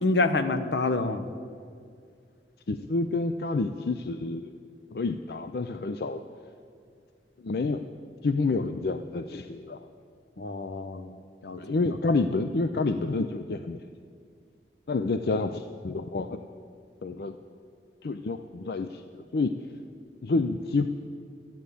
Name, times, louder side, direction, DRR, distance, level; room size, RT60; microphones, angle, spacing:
voice 1, 0.0-1.2 10.4-11.1 11.4-11.8, left 3 dB, 75° left, 11 dB, 0.8 m, -27 dB
voice 2, 2.7-4.5 4.9-6.2 7.4-7.8 8.2-9.9 11.6-13.8 14.9-16.4 17.0-17.4 18.0-19.5 20.2-20.9, left 3 dB, 60° left, 9 dB, 0.5 m, -28 dB
13.0 x 9.2 x 8.4 m, 2.2 s
head